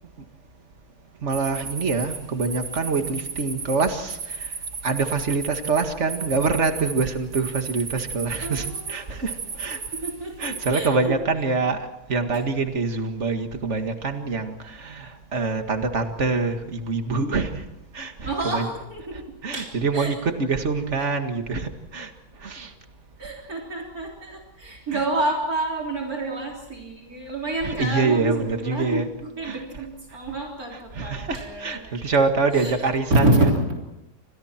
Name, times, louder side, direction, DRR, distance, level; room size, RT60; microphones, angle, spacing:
voice 1, 1.2-4.5 4.8-9.8 10.4-17.6 17.9-18.7 19.4-22.1 22.4-22.7 24.9-25.1 27.6-29.1 29.4-29.6 30.7-33.6, right 4 dB, 45° right, 6 dB, 2.2 m, -25 dB
sound 1, 1.3-10.9, right 5 dB, 85° right, 2.9 m, -35 dB
voice 2, 8.4-9.4 9.7-11.1 18.2-19.3 19.5-20.2 21.0-21.1 23.2-32.1 32.5-32.8 33.1-33.8, right 1 dB, 60° right, -1 dB, 4.1 m, -28 dB
29.0 x 26.0 x 4.5 m, 0.96 s
omnidirectional pair, 1.7 m